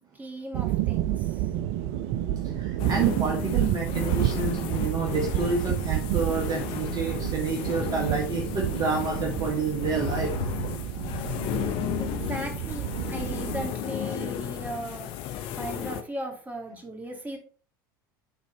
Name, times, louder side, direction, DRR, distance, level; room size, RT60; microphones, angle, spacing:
voice 1, 0.1-1.4 12.0-15.1 15.6-17.4, right 1 dB, 15° right, 2 dB, 2.3 m, -37 dB
sound 1, 0.5-13.7, right 14 dB, 55° right, 0.4 m, -30 dB
sound 2, 1.5-10.7, left 2 dB, 85° left, 2.6 m, -40 dB
voice 2, 2.6-10.3, right 4 dB, 35° right, 1 dB, 1.5 m, -29 dB
sound 3, 2.8-16.0, left 10 dB, 50° left, 0.9 m, -34 dB
10.5 x 4.1 x 3.1 m, 0.40 s
hypercardioid pair, 80°, 11 cm